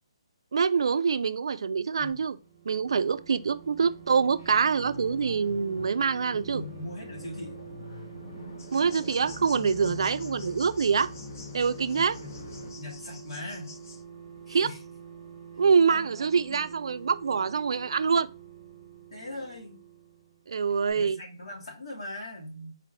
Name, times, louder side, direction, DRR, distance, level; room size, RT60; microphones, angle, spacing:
voice 1, 0.5-2.4 2.7-6.6 8.7-11.1 11.5-12.2 14.5-14.7 15.6-18.3 20.5-21.2, right 5 dB, 60° right, 0.3 m, -25 dB
sound 1, 2.3-20.6 20.9-21.0, right 7 dB, 15° right, 1.0 m, -47 dB
sound 2, 4.3-12.7, left 4 dB, 50° left, 1.2 m, -44 dB
voice 2, 6.3-7.6 9.8-10.0 11.9-12.3 12.7-13.7 14.5-14.8 15.8-16.1 16.5-16.7 19.1-19.8 20.9-22.8, left 1 dB, 80° left, 2.7 m, -40 dB
sound 3, 8.6-14.0, left 4 dB, 35° left, 0.6 m, -49 dB
4.3 x 3.2 x 3.7 m
hypercardioid pair, 175°, 3 cm